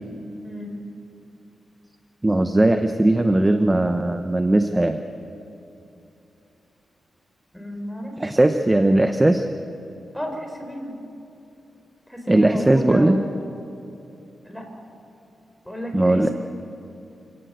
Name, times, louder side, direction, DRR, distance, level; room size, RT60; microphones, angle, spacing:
voice 1, 0.4-0.8 7.5-8.3 10.1-11.0 12.1-13.3 14.5-14.7 15.6-16.3, equal, 5° left, 3 dB, 4.2 m, -32 dB
voice 2, 2.2-5.0 8.2-9.5 12.3-13.2 15.9-16.3, right 1 dB, 15° right, 7 dB, 0.8 m, -18 dB
26.5 x 17.5 x 8.0 m, 2.8 s
wide cardioid pair, 120°, 0 cm